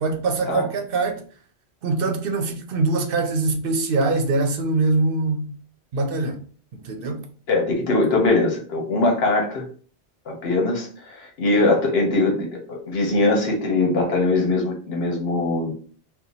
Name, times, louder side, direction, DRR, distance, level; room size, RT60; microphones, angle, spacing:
voice 1, 0.0-1.2 1.8-5.5 5.9-6.4 6.8-7.2, right 3 dB, 65° right, 0.7 m, -23 dB
voice 2, 7.5-9.6 10.3-15.7, left 2 dB, 70° left, 1.1 m, -21 dB
2.8 x 2.2 x 3.9 m
omnidirectional pair, 1.1 m